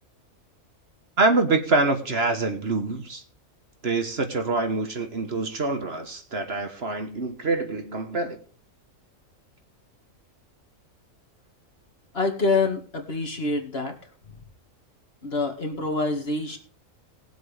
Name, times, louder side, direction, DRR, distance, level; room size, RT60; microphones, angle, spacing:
voice 1, 1.2-3.2 3.8-8.4, right 3 dB, 50° right, 6 dB, 1.5 m, -25 dB
voice 2, 12.1-13.9 15.2-16.6, left 3 dB, 45° left, 3 dB, 2.2 m, -26 dB
20.0 x 7.9 x 3.4 m, 0.41 s
omnidirectional pair, 1.4 m